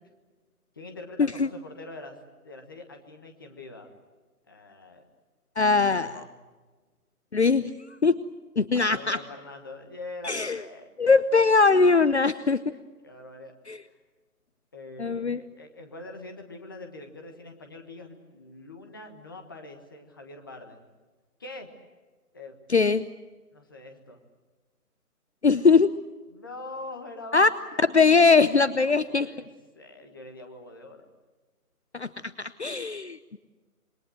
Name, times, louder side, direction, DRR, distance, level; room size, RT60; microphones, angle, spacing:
voice 1, 0.7-2.2 2.4-3.9 4.5-5.0 5.6-6.3 8.7-11.1 13.0-13.5 13.8-13.9 14.7-20.9 21.4-21.7 22.3-22.5 23.5-24.2 26.3-27.9 28.8-29.5 29.7-31.1, left 2 dB, 15° left, 4 dB, 1.4 m, -43 dB
voice 2, 5.6-6.1 7.3-7.7 8.0-8.2 8.6-9.2 10.2-10.6 11.0-12.6 13.7-13.8 15.0-15.4 22.7-23.0 25.4-25.9 27.3-27.5 27.9-29.3 31.9-32.1 32.4-33.4, left 4 dB, 45° left, 14 dB, 0.8 m, -21 dB
27.5 x 23.5 x 7.8 m, 1.3 s
hypercardioid pair, 175°, 46 cm